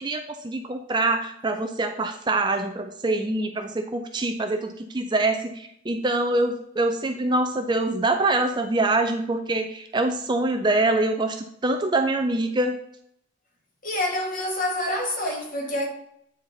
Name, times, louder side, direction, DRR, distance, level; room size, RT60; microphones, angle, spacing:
voice 1, 0.0-12.8, right 2 dB, 20° right, 0.4 m, -25 dB
voice 2, 13.8-15.9, left 1 dB, 40° left, 1.5 m, -27 dB
8.6 x 4.3 x 3.9 m
head